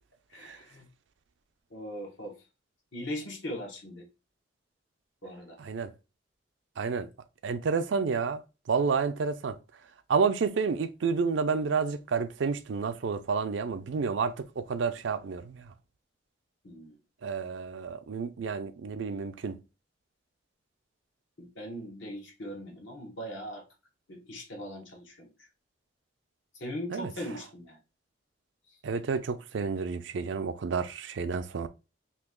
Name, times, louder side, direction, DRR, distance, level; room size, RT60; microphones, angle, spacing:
voice 1, 0.3-0.9 1.7-2.4 2.9-4.0 5.2-5.6 16.6-17.0 21.4-23.6 24.1-25.3 26.5-27.8, equal, 75° left, 1.1 m, -40 dB
voice 2, 5.6-5.9 6.8-7.1 7.4-8.4 8.7-9.5 10.1-15.6 17.2-19.6 26.9-27.1 28.8-31.7, right 5 dB, 70° right, 0.4 m, -30 dB
3.0 x 2.7 x 3.6 m
head